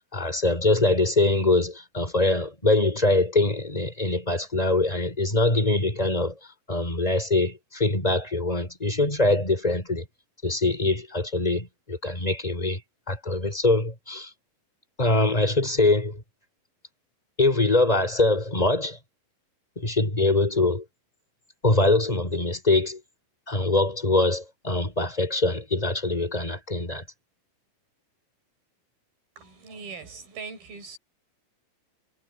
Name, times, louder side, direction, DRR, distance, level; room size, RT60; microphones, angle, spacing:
voice 1, 0.1-6.4 6.7-10.0 10.4-12.8 13.1-14.3 15.0-16.2 17.4-19.0 19.8-20.8 21.6-23.0 23.5-27.0, left 2 dB, 10° left, 4.9 m, -23 dB
voice 2, 29.4-31.0, right 5 dB, 75° right, 6.2 m, -40 dB
omnidirectional pair, 4.2 m